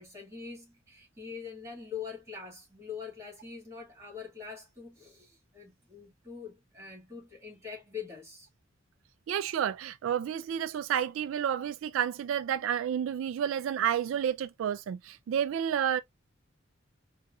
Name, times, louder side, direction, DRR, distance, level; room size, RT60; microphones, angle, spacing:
voice 1, 0.0-8.5, left 6 dB, 15° right, 2.1 m, -44 dB
voice 2, 9.3-16.0, right 9 dB, 85° right, 0.3 m, -30 dB
4.7 x 2.5 x 2.5 m
head